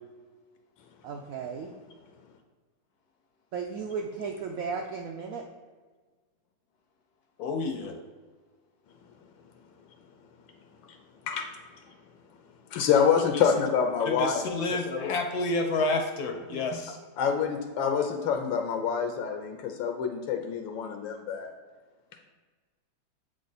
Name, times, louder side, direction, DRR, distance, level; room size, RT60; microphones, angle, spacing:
voice 1, 1.0-1.7 3.5-5.4 16.5-16.7, right 5 dB, 80° right, 2 dB, 0.7 m, -35 dB
voice 2, 7.4-7.9 14.1-17.0, left 2 dB, 70° left, 5 dB, 1.0 m, -29 dB
voice 3, 12.7-15.1 17.2-21.5, left 7 dB, 85° left, 5 dB, 1.4 m, -27 dB
7.6 x 3.7 x 4.0 m, 1.4 s
omnidirectional pair, 2.0 m